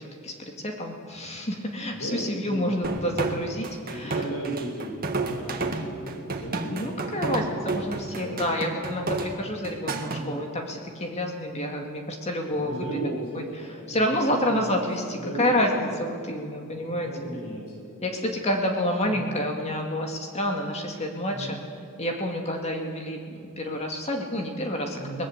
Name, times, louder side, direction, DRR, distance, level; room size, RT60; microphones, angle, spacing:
voice 1, 0.0-4.2 6.7-12.8 13.3-13.4 13.9-17.1 18.0-21.6 22.0-25.3, left 1 dB, 30° left, 2 dB, 2.2 m, -29 dB
voice 2, 1.9-7.3 7.8-8.3 10.0-10.3 12.5-14.8 15.1-15.9 16.6-16.8 17.0-18.0 19.1-19.3 21.3-21.6 25.0-25.3, right 1 dB, 85° left, -2 dB, 7.2 m, -36 dB
sound 1, 2.8-10.2, right 3 dB, 40° right, 1.8 m, -31 dB
22.5 x 20.0 x 8.1 m, 2.4 s
head